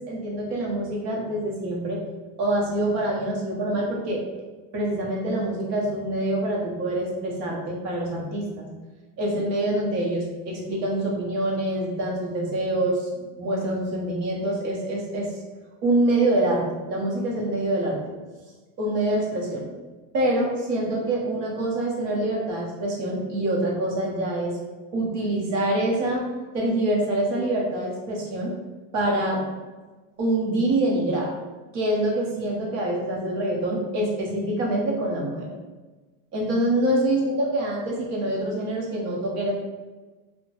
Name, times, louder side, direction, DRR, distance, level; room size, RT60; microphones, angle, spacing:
voice 1, 0.0-2.0 2.4-4.2 4.7-8.7 9.2-15.3 15.8-18.0 18.8-19.7 20.1-24.6 24.9-26.3 26.5-28.5 28.9-29.4 30.2-31.3 31.7-35.5 36.3-39.5, right 1 dB, 45° right, -3 dB, 0.8 m, -25 dB
2.8 x 2.1 x 2.8 m, 1.3 s
cardioid pair, 160°, 35 cm